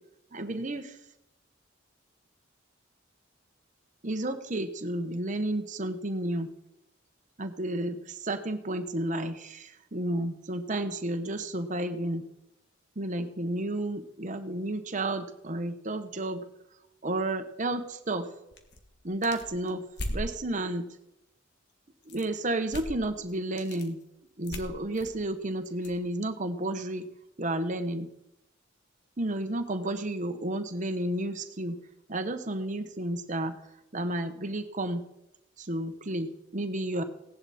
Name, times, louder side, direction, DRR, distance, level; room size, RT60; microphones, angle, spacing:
voice 1, 0.3-0.9 4.0-6.5 7.4-12.2 13.0-16.4 17.0-18.3 19.0-19.8 20.1-20.8 22.1-24.0 24.4-27.1 27.4-28.1 29.2-31.8 32.1-33.5 33.9-35.0 35.7-37.0, right 1 dB, 40° right, 8 dB, 1.1 m, -31 dB
sound 1, 18.5-20.3 22.0-22.4 22.7-23.0 23.3-23.9 24.4-26.0, left 1 dB, 60° left, 1.6 m, -38 dB
17.0 x 11.0 x 4.3 m, 0.89 s
head